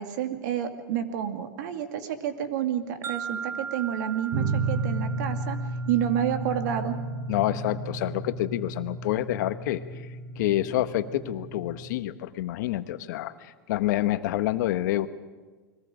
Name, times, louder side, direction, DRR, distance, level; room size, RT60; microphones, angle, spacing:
voice 1, 0.0-5.6 5.9-7.0, right 10 dB, 70° right, 7 dB, 2.4 m, -29 dB
sound 1, 3.0-7.0, right 6 dB, 30° right, 3.6 m, -39 dB
sound 2, 4.3-12.0, right 3 dB, 55° right, 5.3 m, -33 dB
voice 2, 7.3-10.1 10.4-15.1, left 14 dB, 70° left, 11 dB, 1.2 m, -28 dB
30.0 x 21.5 x 5.1 m, 1.3 s
hypercardioid pair, 115°, 10 cm